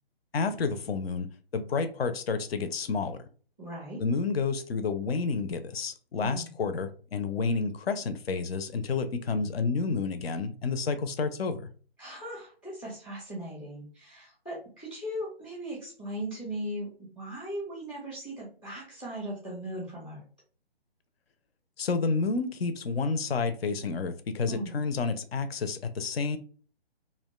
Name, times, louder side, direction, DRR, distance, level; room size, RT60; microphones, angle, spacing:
voice 1, 0.3-1.3 1.5-3.2 4.0-11.7 21.8-26.4, left 4 dB, 70° left, 0.5 m, -30 dB
voice 2, 3.6-4.0 6.2-6.5 12.0-20.2 24.5-24.7, right 1 dB, 10° left, 0.3 m, -38 dB
2.5 x 2.0 x 2.3 m
figure-of-eight pair, 140°, 31 cm